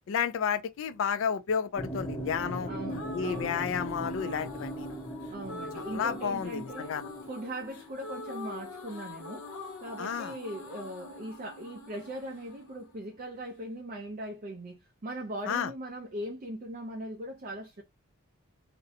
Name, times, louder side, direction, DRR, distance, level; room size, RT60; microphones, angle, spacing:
voice 1, 0.1-2.7 3.1-4.9 5.8-7.1 10.0-10.3 15.5-15.7, left 7 dB, 60° left, 0.3 m, -31 dB
sound 1, 1.8-7.3, right 1 dB, 10° left, 0.9 m, -39 dB
sound 2, 2.6-13.6, left 3 dB, 80° left, 0.8 m, -44 dB
voice 2, 2.7-3.8 5.3-7.0 7.3-9.5 9.8-17.8, right 1 dB, 40° right, 0.4 m, -40 dB
2.4 x 2.1 x 2.6 m
head